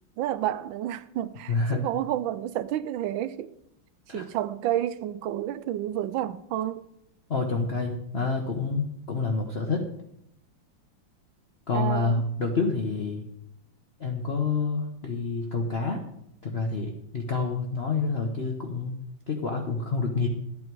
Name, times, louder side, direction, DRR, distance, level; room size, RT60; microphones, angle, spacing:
voice 1, 0.2-3.6 4.1-6.8 11.7-12.2, right 12 dB, 80° right, 1.3 m, -30 dB
voice 2, 1.5-1.8 4.1-4.3 7.3-9.8 11.7-13.2 14.0-16.0 16.4-19.0 19.3-20.3, left 4 dB, 40° left, 1.0 m, -28 dB
12.0 x 8.7 x 4.7 m
omnidirectional pair, 2.1 m